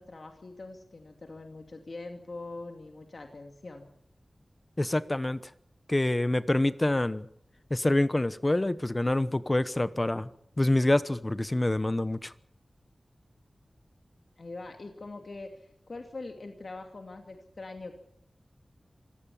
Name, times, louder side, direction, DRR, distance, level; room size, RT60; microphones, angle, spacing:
voice 1, 0.0-3.9 14.4-17.9, left 3 dB, 60° left, 2.6 m, -43 dB
voice 2, 4.8-5.4 5.9-7.3 7.7-10.3 10.6-12.3, left 1 dB, 25° left, 1.0 m, -26 dB
26.0 x 17.5 x 7.3 m
wide cardioid pair, 95°, 0 cm